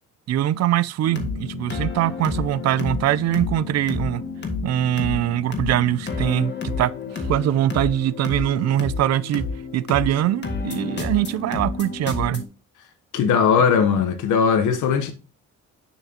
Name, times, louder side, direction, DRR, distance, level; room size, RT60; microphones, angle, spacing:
voice 1, 0.3-4.2 4.6-9.4 9.7-12.4, right 12 dB, 60° right, 0.4 m, -22 dB
sound 1, 1.0-12.5, left 4 dB, 35° left, 1.6 m, -30 dB
voice 2, 13.1-15.1, left 6 dB, 75° left, 1.0 m, -19 dB
7.1 x 5.8 x 2.8 m
cardioid pair, 90°, 30 cm